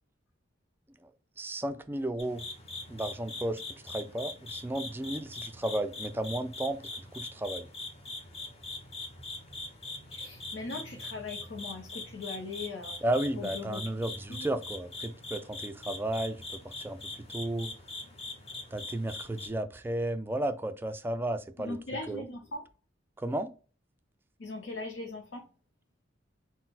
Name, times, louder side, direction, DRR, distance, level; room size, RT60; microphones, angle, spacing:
voice 1, 1.4-2.5 2.9-7.7 13.0-17.7 18.7-21.8 22.1-22.2 23.2-23.5, right 1 dB, 10° right, 0.3 m, -33 dB
sound 1, 2.2-19.5, left 2 dB, 35° left, 0.9 m, -42 dB
voice 2, 10.1-13.0 13.4-13.8 14.3-14.5 21.6-22.6 24.4-25.5, left 3 dB, 75° left, 0.7 m, -39 dB
3.9 x 2.1 x 4.0 m
head